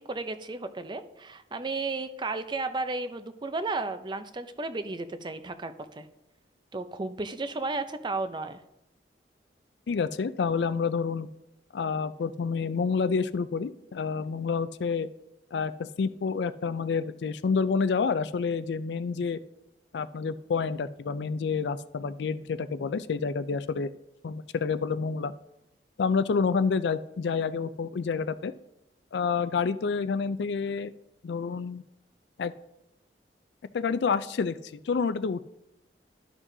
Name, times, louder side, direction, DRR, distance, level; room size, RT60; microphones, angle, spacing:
voice 1, 0.0-6.1 6.7-8.6, right 3 dB, 25° right, 10 dB, 0.5 m, -33 dB
voice 2, 9.9-11.3 11.7-15.1 15.5-19.4 19.9-23.9 24.2-25.3 26.0-28.5 29.1-30.9 31.2-31.8 32.4-32.5 33.7-35.4, left 5 dB, 75° left, 13 dB, 0.4 m, -28 dB
12.5 x 6.1 x 2.7 m, 0.86 s
head